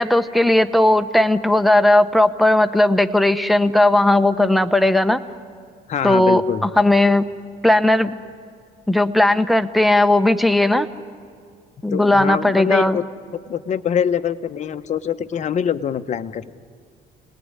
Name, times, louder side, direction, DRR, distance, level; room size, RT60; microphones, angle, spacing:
voice 1, 0.0-5.2 6.0-7.2 7.6-8.1 8.9-10.9 11.8-13.0, left 1 dB, ahead, 9 dB, 0.9 m, -16 dB
voice 2, 5.9-6.7 11.9-13.0 13.5-16.5, left 8 dB, 45° left, 10 dB, 0.9 m, -24 dB
29.5 x 19.0 x 9.8 m, 2.1 s
cardioid pair, 110°, 17 cm